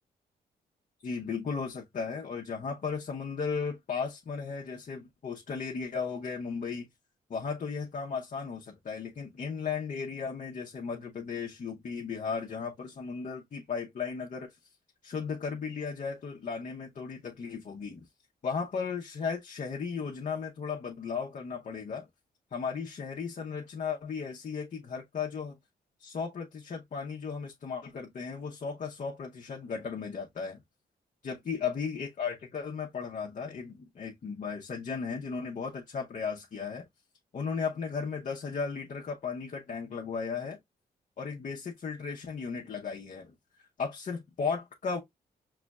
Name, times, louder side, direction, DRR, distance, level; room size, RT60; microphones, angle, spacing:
voice 1, 1.0-6.9 7.3-14.6 15.0-18.1 18.4-22.1 22.5-25.6 26.0-30.6 31.2-36.8 37.3-40.6 41.2-43.3 43.8-45.0, left 5 dB, 50° left, 0.8 m, -35 dB
5.0 x 3.1 x 2.3 m
cardioid pair, 75°, 17 cm